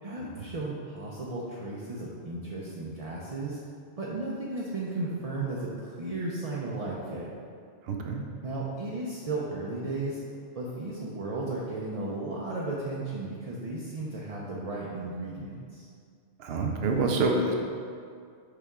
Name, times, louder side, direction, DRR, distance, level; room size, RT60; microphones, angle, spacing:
voice 1, 0.0-3.6 4.0-7.3 8.4-10.2 10.5-15.9, right 2 dB, 40° right, -5 dB, 0.7 m, -34 dB
voice 2, 7.9-8.2 16.4-17.5, right 3 dB, 65° right, 2 dB, 0.9 m, -27 dB
6.7 x 4.4 x 3.6 m, 2.2 s
omnidirectional pair, 1.1 m